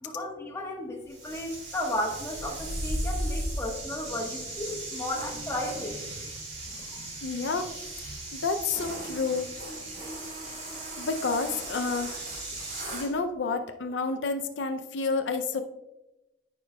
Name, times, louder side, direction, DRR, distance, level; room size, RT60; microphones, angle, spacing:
voice 1, 0.0-5.9 6.9-7.0, left 1 dB, 15° left, -1 dB, 1.2 m, -34 dB
sound 1, 1.1-13.1, right 1 dB, 40° right, 2.4 m, -36 dB
voice 2, 7.2-7.7 8.3-9.5 11.0-12.2 12.9-15.6, left 4 dB, 80° left, 6 dB, 0.5 m, -29 dB
14.0 x 5.1 x 2.3 m, 1.0 s
head